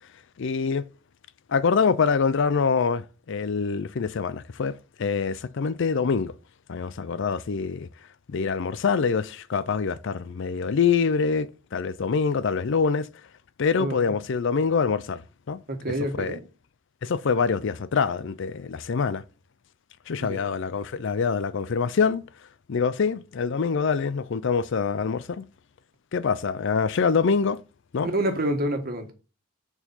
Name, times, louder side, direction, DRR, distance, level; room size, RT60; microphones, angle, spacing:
voice 1, 0.4-0.9 1.5-6.3 6.7-7.9 8.3-13.1 13.6-15.2 15.5-15.6 16.2-16.4 17.0-19.2 20.1-22.2 22.7-25.4 26.1-27.6 27.9-28.1, left 5 dB, 60° left, 0.5 m, -25 dB
voice 2, 13.8-14.1 15.7-16.4 20.2-20.4 28.0-29.1, right 1 dB, 45° right, 1.5 m, -28 dB
6.9 x 4.5 x 5.6 m
head